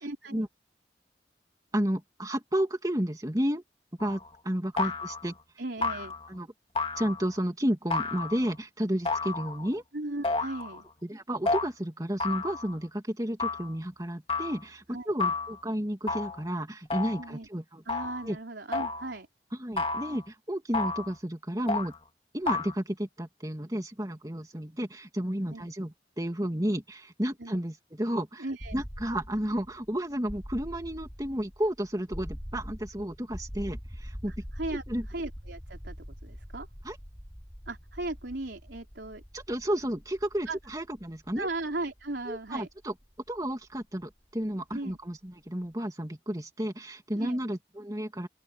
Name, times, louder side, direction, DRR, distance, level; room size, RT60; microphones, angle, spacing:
voice 1, 0.0-0.5 4.8-4.9 5.6-6.2 9.9-10.9 14.9-15.1 17.2-17.5 17.9-19.3 25.5-25.7 27.4-27.6 28.4-28.8 34.3-36.7 37.7-39.2 40.5-40.6 41.4-42.7 44.7-45.0 47.2-47.4, right 2 dB, 80° right, 3.7 m, -37 dB
voice 2, 1.7-3.6 4.0-5.3 6.3-6.5 7.0-9.8 11.0-17.8 18.2-18.4 19.6-21.9 22.3-28.4 28.7-34.3 34.7-35.0 36.8-37.0 39.3-41.5 42.3-42.9 43.3-48.3, equal, 20° right, 2.8 m, -32 dB
sound 1, 4.0-4.3 4.8-5.3 5.8-6.3 6.8-7.4 7.9-8.5 9.1-9.8 10.2-10.8 11.5-11.7 12.2-12.8 13.4-13.7 14.3-14.6 15.2-15.6 16.1-16.4 16.9-17.3 17.9-18.3 18.7-19.1 19.8-20.2 20.7-21.1 21.7-22.0 22.5-22.7, left 3 dB, 30° left, 2.1 m, -31 dB
sound 2, 28.6-44.4, equal, ahead, 4.3 m, -44 dB
open air
head